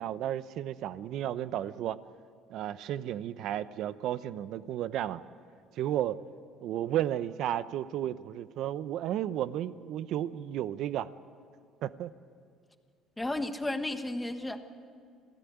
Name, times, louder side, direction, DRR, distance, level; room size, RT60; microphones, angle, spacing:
voice 1, 0.0-2.0 2.5-5.2 5.8-6.2 6.6-11.1 11.8-12.1, right 11 dB, 65° right, 15 dB, 0.8 m, -33 dB
voice 2, 13.2-14.7, left 1 dB, 10° left, 8 dB, 1.4 m, -33 dB
27.0 x 16.5 x 9.4 m, 2.2 s
cardioid pair, 125°, 0 cm